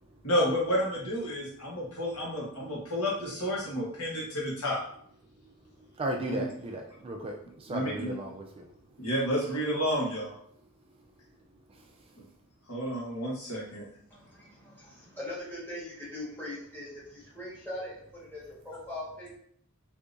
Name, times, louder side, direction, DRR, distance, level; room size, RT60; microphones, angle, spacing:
voice 1, 0.2-4.8 6.3-6.4 7.7-8.1 9.0-10.3 12.2-12.3 12.7-13.8, equal, 80° left, -4 dB, 1.3 m, -30 dB
voice 2, 6.0-8.6, right 1 dB, 25° right, 2 dB, 0.3 m, -35 dB
voice 3, 14.1-19.3, left 1 dB, 10° left, -8 dB, 1.4 m, -41 dB
3.6 x 2.7 x 2.6 m, 0.64 s
head